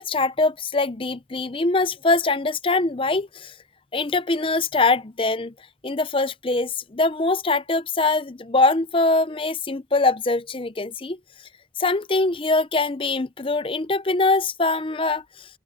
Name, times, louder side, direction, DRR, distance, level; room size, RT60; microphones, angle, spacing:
voice 1, 0.0-3.5 3.9-5.5 5.8-11.2 11.8-15.5, left 3 dB, 30° left, 0.6 m, -23 dB
open air
head